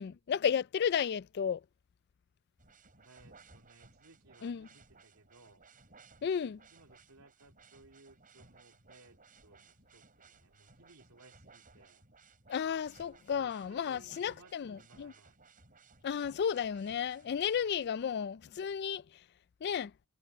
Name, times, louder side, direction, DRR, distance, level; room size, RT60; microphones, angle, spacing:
voice 1, 0.0-1.6 4.4-4.7 6.2-6.6 12.5-15.1 16.0-19.0 19.6-19.9, left 7 dB, 50° left, 0.3 m, -33 dB
sound 1, 2.6-17.8, right 4 dB, 40° right, 7.5 m, -61 dB
voice 2, 3.0-5.6 6.7-12.0 13.3-15.4, right 2 dB, 80° right, 2.5 m, -62 dB
head